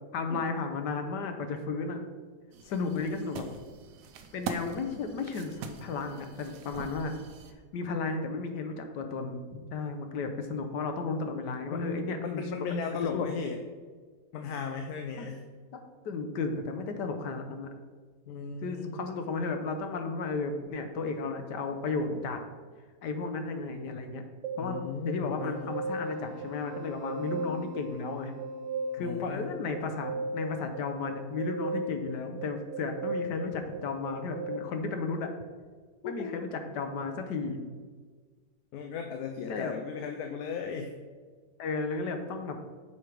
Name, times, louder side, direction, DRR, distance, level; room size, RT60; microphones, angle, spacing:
voice 1, 0.1-2.0 2.6-3.4 4.3-7.1 7.7-12.5 13.1-13.3 15.2-15.3 15.7-15.8 16.0-17.7 18.6-22.4 23.0-24.2 24.6-28.3 28.9-35.3 36.0-37.6 39.5-39.7 41.6-42.6, left 4 dB, 85° left, 6 dB, 1.4 m, -34 dB
sound 1, 2.5-7.5, right 4 dB, 85° right, 1.3 m, -42 dB
voice 2, 11.7-13.6 14.3-15.5 18.3-19.0 24.6-25.7 29.0-29.5 36.0-36.3 38.7-40.9, left 5 dB, 70° left, 5 dB, 1.0 m, -36 dB
sound 2, 24.4-34.6, right 2 dB, 60° right, 1.0 m, -37 dB
7.1 x 4.6 x 5.0 m, 1.5 s
omnidirectional pair, 1.8 m